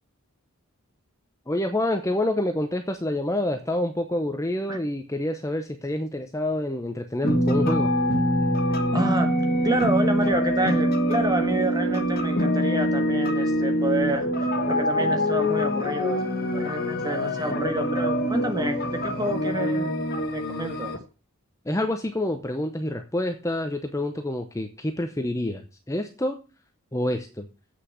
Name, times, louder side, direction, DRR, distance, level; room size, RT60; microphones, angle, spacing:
voice 1, 1.5-7.9 21.7-25.6 25.9-26.4 26.9-27.5, left 1 dB, 15° left, 5 dB, 0.8 m, -27 dB
sound 1, 7.2-21.0, equal, 45° left, 1.6 m, -24 dB
voice 2, 8.9-9.3 9.6-20.9, right 1 dB, 15° right, 6 dB, 1.5 m, -29 dB
8.1 x 6.5 x 7.8 m, 0.34 s
head